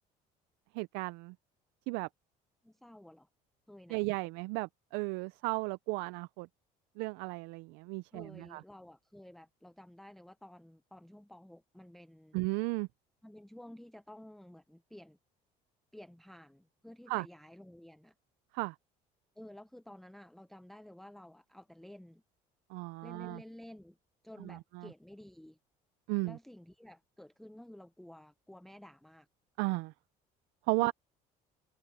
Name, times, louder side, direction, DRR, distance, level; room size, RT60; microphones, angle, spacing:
voice 1, 0.7-1.4 1.9-2.1 3.9-6.5 7.0-8.6 12.3-12.9 17.1-17.3 18.5-18.8 22.7-23.4 24.4-24.9 26.1-26.4 29.6-29.9 30.7-30.9, right 25 dB, 90° right, 0.4 m, -35 dB
voice 2, 2.6-3.3 3.7-4.0 8.1-12.4 13.2-15.2 15.9-18.1 19.4-22.2 23.0-24.0 24.2-25.6 26.2-29.3 30.8-30.9, left 1 dB, ahead, 0.5 m, -52 dB
cardioid pair, 110°, 16 cm